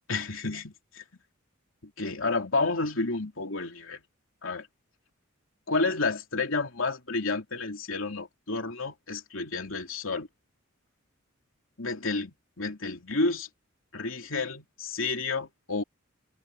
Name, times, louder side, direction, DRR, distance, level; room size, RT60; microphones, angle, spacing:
voice 1, 0.1-1.0 1.8-4.0 4.4-4.7 5.7-10.3 11.8-13.5 13.9-15.8, left 3 dB, 70° left, 3.4 m, -30 dB
head